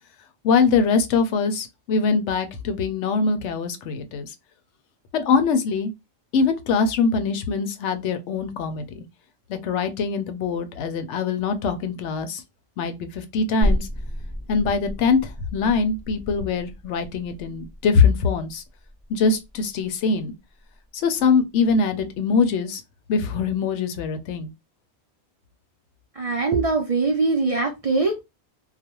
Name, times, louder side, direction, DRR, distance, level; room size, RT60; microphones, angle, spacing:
voice 1, 0.4-4.3 5.1-5.9 6.3-9.1 9.5-12.4 12.8-13.9 14.5-18.6 19.1-20.3 20.9-22.8 23.1-24.5, left 5 dB, 85° left, 0.9 m, -23 dB
sound 1, 13.6-20.9 21.2-21.3, equal, 10° left, 0.7 m, -31 dB
voice 2, 26.1-28.2, right 3 dB, 50° right, 0.4 m, -22 dB
2.4 x 2.2 x 2.9 m
omnidirectional pair, 1.2 m